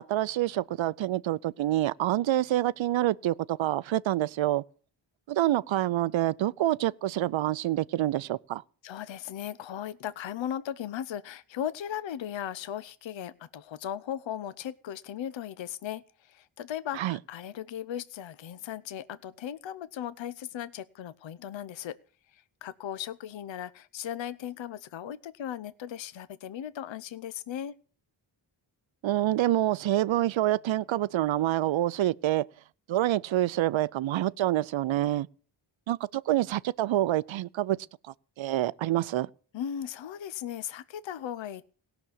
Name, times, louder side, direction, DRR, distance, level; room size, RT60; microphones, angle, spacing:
voice 1, 0.0-4.6 5.3-8.6 16.9-17.2 29.0-32.5 32.9-35.3 35.9-37.8 38.4-39.3, right 14 dB, 70° right, 0.6 m, -27 dB
voice 2, 8.8-22.0 22.3-27.7 39.5-41.6, left 10 dB, 65° left, 0.7 m, -37 dB
17.0 x 6.1 x 8.5 m
cardioid pair, 65°, 48 cm